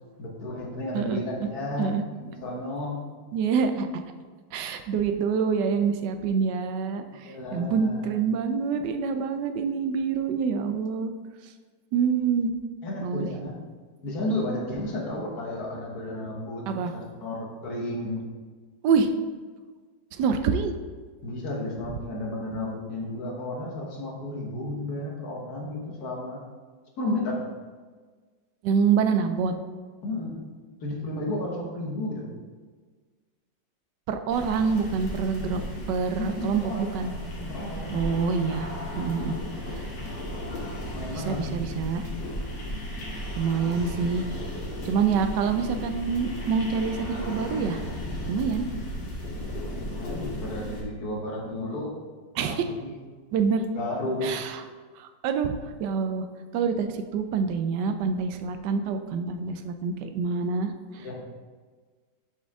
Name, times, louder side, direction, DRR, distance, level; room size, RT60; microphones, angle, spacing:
voice 1, 0.2-3.0 7.2-8.1 12.8-13.5 14.0-18.2 21.2-26.4 27.0-27.4 30.0-30.4 30.8-32.3 36.1-37.0 37.5-38.0 40.9-41.7 49.7-51.9 52.4-52.9 53.7-54.4 61.0-61.1, left 1 dB, 60° left, -2 dB, 1.7 m, -32 dB
voice 2, 3.3-3.9 4.5-11.1 11.9-12.5 13.0-13.3 16.7-16.9 18.8-19.1 20.2-20.7 28.6-29.5 34.1-35.6 35.9-37.1 37.9-38.7 39.0-39.4 39.7-39.9 41.1-42.0 43.4-44.2 44.8-47.8 48.3-48.7 52.4-52.6 53.3-53.7 54.2-54.6 55.0-55.5 55.8-56.2 56.5-61.1, right 5 dB, 75° right, 7 dB, 1.2 m, -26 dB
sound 1, 34.3-50.8, left 1 dB, 80° left, 2.2 m, -35 dB
7.0 x 4.5 x 3.6 m, 1.5 s
omnidirectional pair, 1.9 m